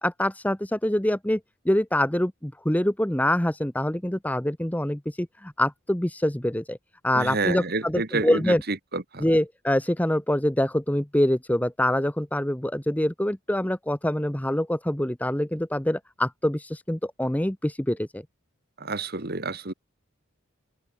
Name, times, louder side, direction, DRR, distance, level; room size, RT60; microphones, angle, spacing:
voice 1, 0.0-1.4 1.6-6.8 7.0-8.6 9.2-18.2, left 1 dB, 5° left, 0.9 m, -25 dB
voice 2, 7.1-9.2 18.8-19.7, right 3 dB, 45° right, 2.0 m, -29 dB
head